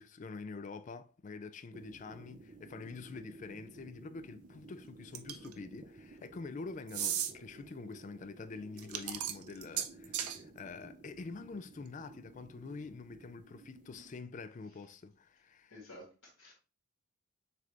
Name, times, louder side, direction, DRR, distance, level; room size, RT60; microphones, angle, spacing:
voice 1, 0.0-15.7, left 4 dB, 35° left, 0.3 m, -46 dB
sound 1, 1.7-14.2, right 2 dB, 35° right, 0.5 m, -55 dB
sound 2, 5.1-5.5 6.9-7.3 8.8-10.4, right 10 dB, 90° right, 0.6 m, -35 dB
voice 2, 15.7-16.5, left 1 dB, 65° left, 2.0 m, -52 dB
6.6 x 2.4 x 3.3 m
head